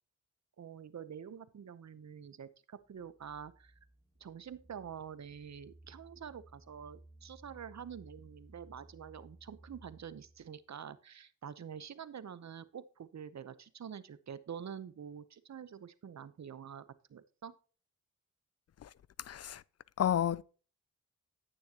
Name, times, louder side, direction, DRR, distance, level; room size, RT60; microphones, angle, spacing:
voice 1, 0.6-3.8 4.2-16.8 17.1-17.5, right 8 dB, 60° right, 0.8 m, -47 dB
sound 1, 2.8-10.6, right 1 dB, 5° right, 2.1 m, -59 dB
voice 2, 19.3-19.6 20.0-20.4, left 10 dB, 55° left, 0.4 m, -31 dB
10.0 x 9.1 x 2.9 m
cardioid pair, 65°, 31 cm